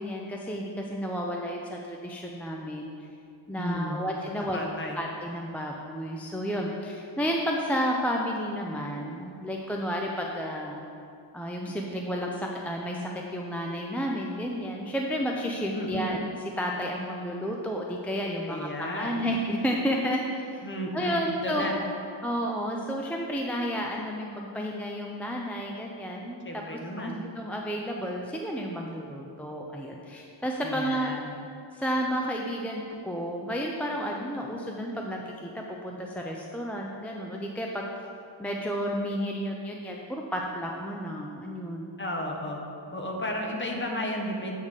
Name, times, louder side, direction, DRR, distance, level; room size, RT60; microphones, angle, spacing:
voice 1, 0.0-2.9 3.5-10.8 11.3-20.6 20.9-21.7 22.2-26.4 26.7-31.1 31.7-37.9 38.4-42.0, equal, 5° left, -1 dB, 0.3 m, -31 dB
voice 2, 3.6-4.0 4.5-5.0 15.7-16.1 18.4-19.3 20.6-21.8 26.4-27.2 30.6-31.3 42.0-42.6 42.9-44.6, left 1 dB, 25° left, 0 dB, 0.9 m, -33 dB
8.2 x 3.6 x 6.5 m, 2.5 s
wide cardioid pair, 150°, 45 cm